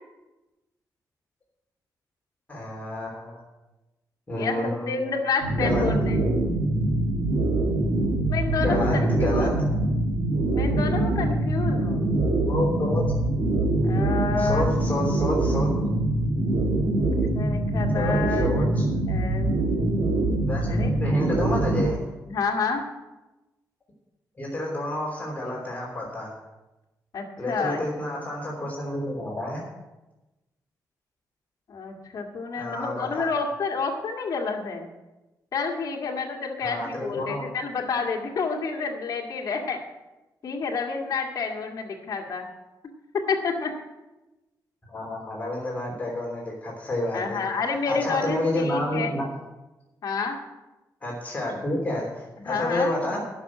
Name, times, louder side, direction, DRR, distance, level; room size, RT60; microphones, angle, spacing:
voice 1, 2.5-3.4 4.3-5.0 5.6-5.8 8.5-9.5 12.4-13.0 14.4-15.7 17.9-18.8 20.5-22.0 24.4-26.3 27.4-29.7 32.5-33.3 36.6-37.5 44.9-47.4 47.9-49.3 51.0-53.2, left 1 dB, 20° left, -3 dB, 3.2 m, -29 dB
voice 2, 4.4-6.2 8.3-9.6 10.5-12.1 13.8-14.7 17.2-18.7 19.1-19.5 20.7-20.9 22.3-22.8 27.1-27.8 31.7-34.9 35.5-39.8 40.4-42.5 43.3-43.7 47.1-49.1 50.0-50.4 52.4-52.9, left 4 dB, 55° left, -1 dB, 1.9 m, -29 dB
sound 1, 5.4-21.9, right 2 dB, 65° right, 2.4 m, -24 dB
11.5 x 6.3 x 8.4 m, 1.1 s
cardioid pair, 110°, 7 cm